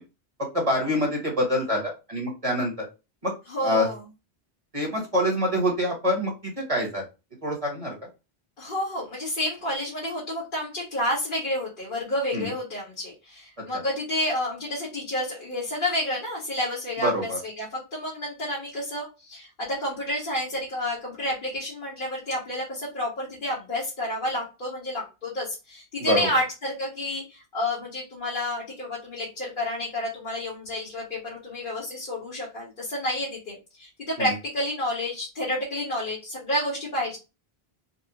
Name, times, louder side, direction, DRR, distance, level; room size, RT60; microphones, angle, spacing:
voice 1, 0.5-2.7 3.2-3.3 3.6-3.9 4.7-7.0 7.4-8.0 12.3-12.5 17.0-17.4 26.1-26.3 34.2-34.3, equal, 35° right, 0 dB, 1.1 m, -25 dB
voice 2, 3.5-4.0 8.6-37.2, left 1 dB, 55° left, -6 dB, 1.4 m, -30 dB
4.1 x 2.0 x 2.8 m, 0.28 s
omnidirectional pair, 1.0 m